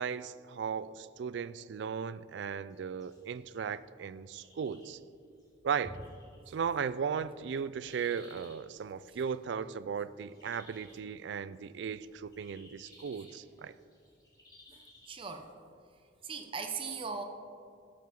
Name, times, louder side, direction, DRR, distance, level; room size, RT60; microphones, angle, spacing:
voice 1, 0.0-5.0 5.6-6.0 6.5-13.7, right 6 dB, 60° right, 17 dB, 0.3 m, -36 dB
sound 1, 2.7-15.4, left 1 dB, 20° left, 1.9 m, -60 dB
voice 2, 14.7-15.5 16.2-17.2, right 5 dB, 25° right, 5 dB, 0.7 m, -39 dB
12.0 x 5.9 x 5.9 m, 2.5 s
head